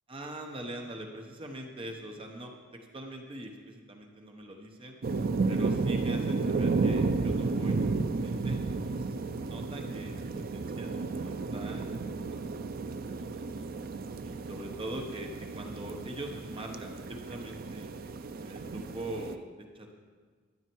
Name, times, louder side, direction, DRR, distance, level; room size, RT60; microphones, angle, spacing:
voice 1, 0.1-5.0 5.5-8.6 9.0-12.2 12.5-13.7 14.2-17.9 18.4-19.9, right 1 dB, 25° right, 2 dB, 1.0 m, -43 dB
sound 1, 5.0-19.4, right 3 dB, 45° right, 0.4 m, -32 dB
12.5 x 9.7 x 4.6 m, 1.5 s
head